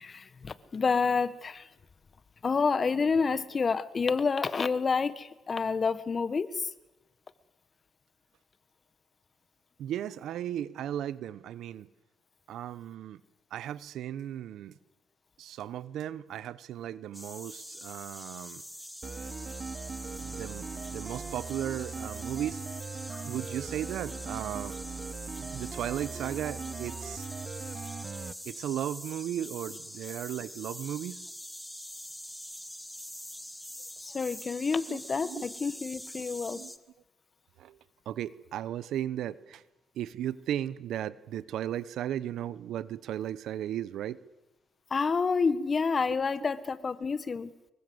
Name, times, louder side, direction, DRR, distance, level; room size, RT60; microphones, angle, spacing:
voice 1, 0.0-1.7 2.4-6.7 23.1-23.2 34.0-36.6 44.9-47.5, left 5 dB, 40° left, 16 dB, 1.4 m, -29 dB
voice 2, 9.8-11.9 12.5-13.2 13.5-14.8 15.4-18.6 20.2-22.6 23.2-24.8 25.4-27.3 28.4-31.2 34.9-35.4 36.5-36.7 37.6-37.8 38.1-39.6 39.9-44.2, right 11 dB, 80° right, 18 dB, 1.0 m, -36 dB
cicada mixdown, 17.1-36.8, equal, 5° left, 1.7 m, -44 dB
sound 1, 19.0-28.3, right 5 dB, 35° right, 1.0 m, -40 dB
25.0 x 23.0 x 7.9 m, 0.98 s
cardioid pair, 90°, 0 cm